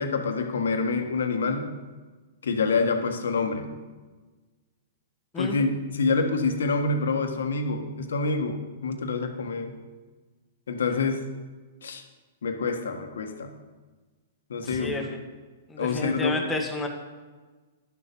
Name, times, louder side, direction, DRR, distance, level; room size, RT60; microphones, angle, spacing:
voice 1, 0.0-1.7 2.4-3.7 5.3-9.7 10.7-11.3 11.8-12.0 12.4-13.5 14.5-15.0 15.8-16.4, left 4 dB, 80° left, 6 dB, 1.5 m, -27 dB
voice 2, 14.6-15.2 15.7-16.9, left 2 dB, 10° left, 3 dB, 1.8 m, -31 dB
11.0 x 7.0 x 6.8 m, 1.3 s
hypercardioid pair, 125°, 0 cm